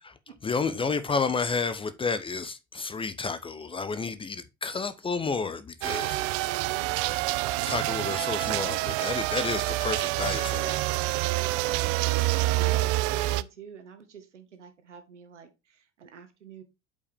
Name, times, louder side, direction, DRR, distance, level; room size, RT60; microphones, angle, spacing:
voice 1, 0.4-6.6 7.7-11.2, left 4 dB, 15° left, 0.6 m, -31 dB
sound 1, 5.8-13.4, right 19 dB, 45° right, 0.4 m, -27 dB
voice 2, 12.5-16.6, right 7 dB, 75° right, 1.5 m, -46 dB
8.2 x 5.3 x 3.5 m
figure-of-eight pair, 70°, 36 cm